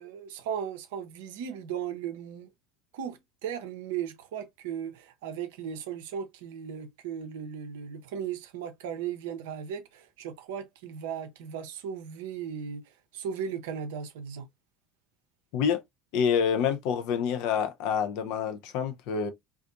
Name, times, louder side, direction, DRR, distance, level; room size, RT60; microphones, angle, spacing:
voice 1, 0.0-2.5 2.9-12.8 13.1-14.5, right 8 dB, 70° right, 0.5 m, -36 dB
voice 2, 16.1-19.3, left 7 dB, 65° left, 0.5 m, -27 dB
2.5 x 2.3 x 2.5 m
hypercardioid pair, 70°, 0 cm